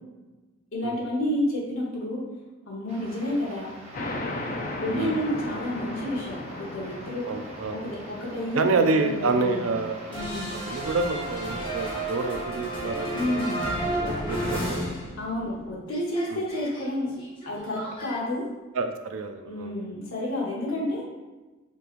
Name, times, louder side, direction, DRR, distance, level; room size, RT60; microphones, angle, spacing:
voice 1, 0.7-2.2 2.6-3.7 4.8-7.3 7.7-9.7 10.1-10.5 13.1-13.6 15.2-17.1 17.5-18.4 19.5-21.0, left 1 dB, 70° left, -5 dB, 1.1 m, -30 dB
sound 1, 2.9-12.5, right 1 dB, 30° right, 0.7 m, -44 dB
sound 2, 3.9-11.1, left 2 dB, 40° left, 0.5 m, -37 dB
voice 2, 7.3-7.8 8.5-10.0 10.7-13.4 14.0-14.9 16.3-16.4 18.7-19.7, right 3 dB, 75° right, 6 dB, 0.4 m, -27 dB
sound 3, 10.1-15.6 15.8-18.2, right 1 dB, 25° left, 1.0 m, -32 dB
6.8 x 3.1 x 2.5 m, 1.2 s
head